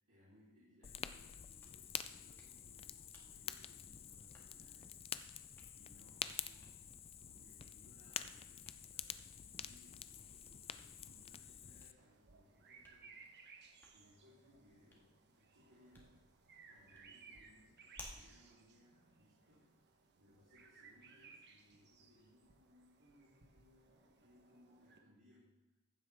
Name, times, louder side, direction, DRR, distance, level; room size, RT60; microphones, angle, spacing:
voice 1, 0.1-16.2 16.6-25.8, left 1 dB, 70° right, -11 dB, 3.7 m, -68 dB
Fire, 0.8-11.9, left 8 dB, 25° left, 0.3 m, -48 dB
Hands, 1.4-19.9, left 1 dB, 10° left, 1.8 m, -64 dB
sound 1, 12.0-25.0, right 4 dB, 50° right, 1.1 m, -63 dB
14.5 x 8.0 x 3.6 m, 1.0 s
head